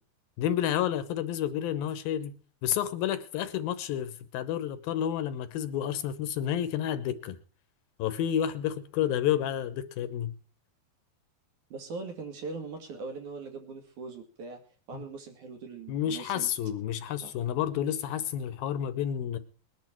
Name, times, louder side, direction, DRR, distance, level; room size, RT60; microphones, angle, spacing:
voice 1, 0.4-2.4 2.6-7.4 8.0-10.3 14.9-15.0 15.9-19.4, left 10 dB, 75° left, 12 dB, 2.6 m, -30 dB
voice 2, 11.7-14.6 14.9-16.5 17.2-17.3, right 4 dB, 55° right, 5 dB, 3.3 m, -41 dB
21.5 x 10.5 x 4.5 m, 0.37 s
omnidirectional pair, 4.5 m